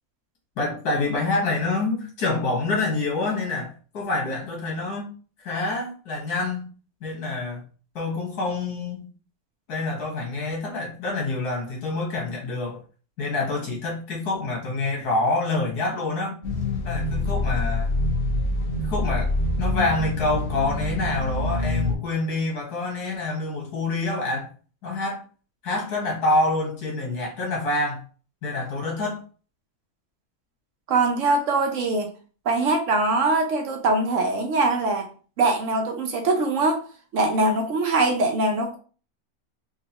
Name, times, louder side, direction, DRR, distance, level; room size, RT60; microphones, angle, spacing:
voice 1, 0.6-5.1 5.4-6.7 7.0-7.6 8.0-9.1 9.7-12.8 13.2-16.4 16.8-17.9 18.8-19.3 19.6-24.5 24.8-25.2 25.6-28.0 28.4-29.2, left 2 dB, 85° left, -2 dB, 1.8 m, -27 dB
sound 1, 16.4-21.9, left 2 dB, 45° left, 1.0 m, -25 dB
voice 2, 30.9-32.1 32.5-35.1 35.4-36.8 37.1-38.8, right 3 dB, 65° right, 3 dB, 0.9 m, -22 dB
4.5 x 2.3 x 2.8 m, 0.38 s
omnidirectional pair, 1.6 m